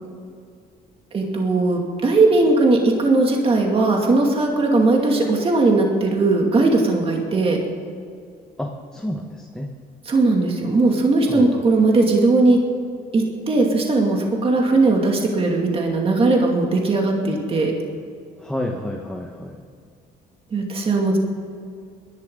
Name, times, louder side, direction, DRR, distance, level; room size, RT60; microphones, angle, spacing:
voice 1, 1.1-7.6 10.1-12.6 13.1-17.7 20.5-21.2, right 3 dB, 35° right, 0 dB, 2.4 m, -18 dB
voice 2, 8.6-9.7 11.3-11.6 18.4-19.6, left 1 dB, 5° left, 1 dB, 1.2 m, -30 dB
21.0 x 11.5 x 3.9 m, 2.3 s
cardioid pair, 110°, 17 cm